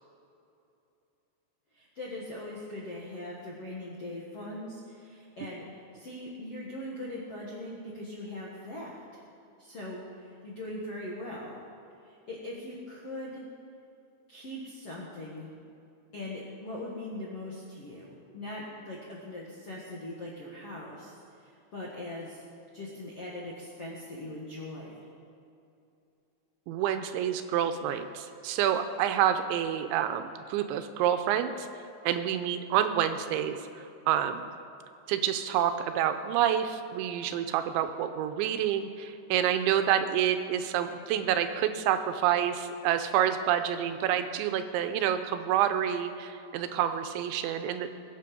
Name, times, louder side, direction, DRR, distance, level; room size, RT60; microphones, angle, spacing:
voice 1, 1.7-9.2 9.6-11.6 12.0-13.4 14.3-15.5 16.1-22.4 22.7-25.1, left 1 dB, 65° left, -5 dB, 1.5 m, -41 dB
voice 2, 26.7-31.7 32.0-34.5 35.1-48.0, right 10 dB, 80° right, 9 dB, 2.9 m, -28 dB
22.0 x 8.3 x 5.2 m, 2.7 s
omnidirectional pair, 5.4 m